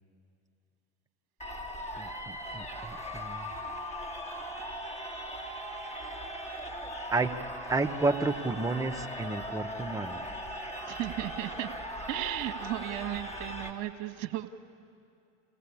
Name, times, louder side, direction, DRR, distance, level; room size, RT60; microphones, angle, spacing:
sound 1, 1.4-13.7, equal, 20° left, 2.7 m, -39 dB
voice 1, 2.0-3.5 5.8-6.5 7.1-7.4 7.7-10.2, right 3 dB, 10° right, 5 dB, 1.0 m, -32 dB
voice 2, 10.9-11.7 12.1-14.5, right 15 dB, 65° right, 8 dB, 1.3 m, -35 dB
27.5 x 16.5 x 8.6 m, 2.5 s
hypercardioid pair, 85°, 37 cm